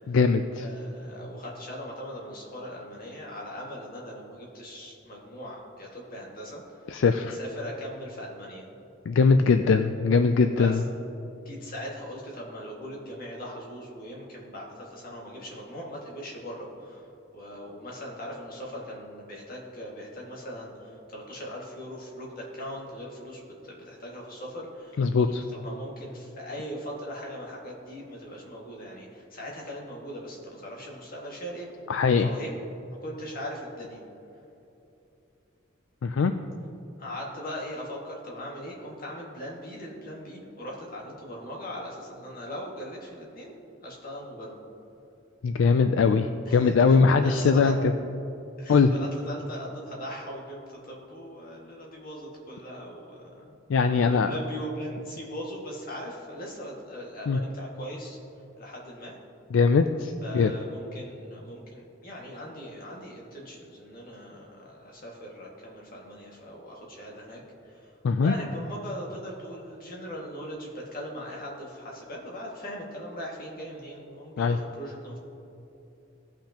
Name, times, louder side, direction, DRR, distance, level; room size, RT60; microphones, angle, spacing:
voice 1, 0.1-0.7 6.9-7.4 9.1-10.8 25.0-25.4 31.9-32.3 36.0-36.3 45.4-47.8 48.7-48.9 53.7-54.3 57.3-57.4 59.5-60.5 68.0-68.3 74.4-74.6, left 5 dB, 70° left, 8 dB, 0.4 m, -21 dB
voice 2, 0.6-6.6 7.3-8.6 10.6-10.8 11.5-17.1 17.3-31.7 32.2-32.5 33.0-34.0 37.0-44.6 46.5-47.8 48.6-50.6 50.9-53.5 53.8-58.2 58.6-59.1 60.2-67.9 68.2-75.2, equal, 45° left, -3 dB, 1.9 m, -40 dB
17.5 x 5.8 x 2.9 m, 2.9 s
head